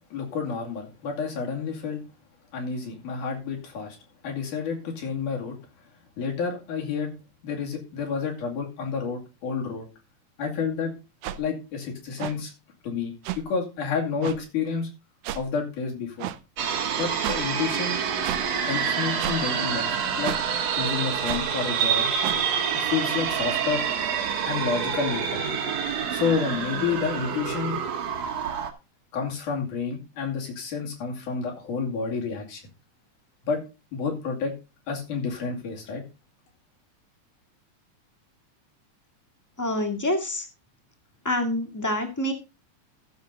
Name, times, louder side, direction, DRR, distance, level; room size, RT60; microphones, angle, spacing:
voice 1, 0.1-2.0 2.5-4.0 4.2-5.6 6.2-7.1 7.4-9.9 10.4-10.9 11.4-12.5 12.8-14.9 15.4-16.3 17.0-18.0 18.6-20.3 20.7-22.0 22.8-23.8 24.5-25.4 26.1-27.8 29.1-32.6 33.4-33.6 33.9-34.5 34.9-36.0, left 5 dB, 85° left, 0 dB, 4.0 m, -29 dB
sound 1, 11.2-11.4 12.2-12.3 13.2-13.4 14.2-14.4 15.2-15.4 16.2-16.4 17.2-17.4 18.2-18.4 19.2-19.4 20.2-20.4 21.2-21.5 22.2-22.4, right 12 dB, 85° right, 2.2 m, -31 dB
sound 2, 16.6-28.7, right 7 dB, 60° right, 2.4 m, -27 dB
voice 2, 39.6-40.4 41.2-42.3, left 1 dB, 10° left, 3 dB, 0.9 m, -26 dB
14.5 x 6.6 x 3.9 m, 0.28 s
omnidirectional pair, 3.5 m